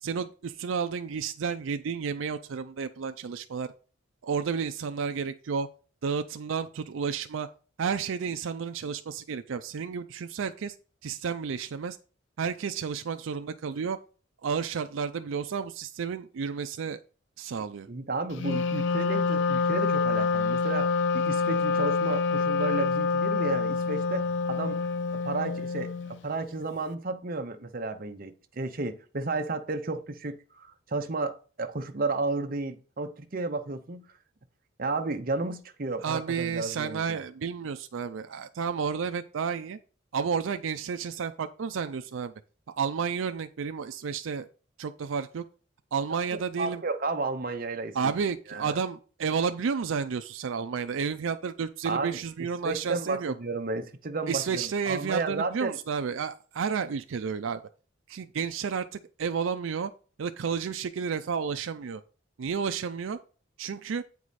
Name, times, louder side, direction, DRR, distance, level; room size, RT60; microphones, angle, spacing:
voice 1, 0.0-3.7 4.2-5.7 6.0-7.5 7.8-10.8 11.0-12.0 12.4-14.0 14.4-17.0 17.4-17.9 36.0-39.8 40.1-42.3 42.8-44.5 44.8-45.4 45.9-46.8 47.9-53.3 54.3-57.6 58.1-59.9 60.2-62.0 62.4-63.2 63.6-64.0, right 6 dB, 75° right, 0.4 m, -31 dB
voice 2, 17.9-24.8 25.2-25.9 26.2-34.0 34.8-37.2 46.6-48.0 48.5-48.8 51.8-52.2 52.6-55.8, right 3 dB, 45° right, 0.7 m, -32 dB
Wind instrument woodwind instrument, 18.4-26.2, left 4 dB, 60° left, 0.4 m, -27 dB
8.5 x 4.7 x 4.1 m
head